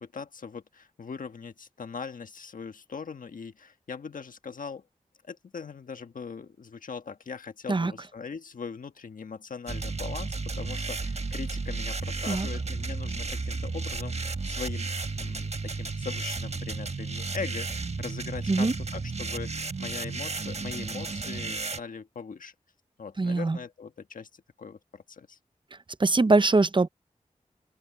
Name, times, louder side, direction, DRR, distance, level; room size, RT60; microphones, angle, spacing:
voice 1, 0.0-4.9 5.2-19.5 19.8-22.5 23.0-25.4, left 5 dB, 85° left, 1.5 m, -40 dB
sound 1, 9.7-21.8, right 3 dB, 50° right, 1.5 m, -33 dB
voice 2, 23.2-23.6 26.0-26.9, right 3 dB, 35° right, 0.7 m, -22 dB
open air
cardioid pair, 45°, 14 cm